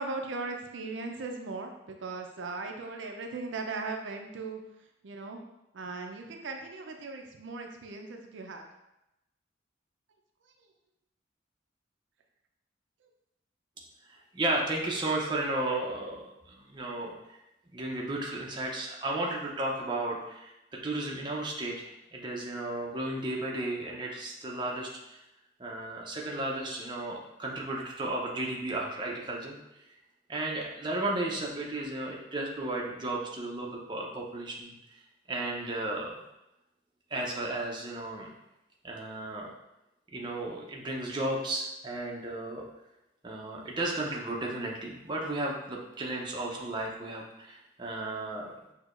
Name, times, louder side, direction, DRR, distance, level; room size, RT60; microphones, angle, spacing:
voice 1, 0.0-4.6 5.0-5.4 5.7-8.7 10.6-10.7 13.0-13.1, right 3 dB, 80° right, 3 dB, 0.5 m, -38 dB
voice 2, 14.3-17.1 17.7-20.5 20.8-25.2 25.6-29.6 30.3-34.8 35.3-36.2 37.1-38.3 38.8-39.5 40.1-42.6 43.2-48.5, right 2 dB, 25° right, -2 dB, 0.7 m, -34 dB
6.2 x 2.8 x 2.5 m, 0.90 s
head